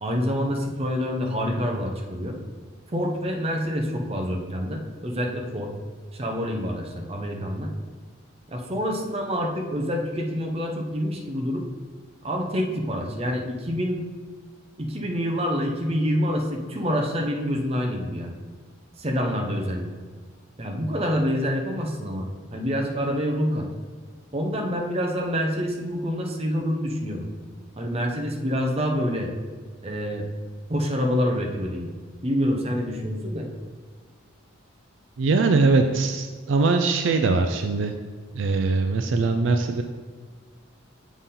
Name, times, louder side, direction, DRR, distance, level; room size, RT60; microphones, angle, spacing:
voice 1, 0.0-2.4 2.9-5.7 6.1-7.7 8.5-11.6 12.2-14.0 14.8-18.3 19.0-19.9 20.6-23.7 24.3-27.3 27.8-29.3 29.8-30.3 30.7-31.9 32.2-33.5, equal, 30° right, 2 dB, 0.7 m, -27 dB
voice 2, 35.2-37.9 38.3-39.8, right 3 dB, 65° right, 6 dB, 0.4 m, -21 dB
7.1 x 4.1 x 3.7 m, 1.5 s
head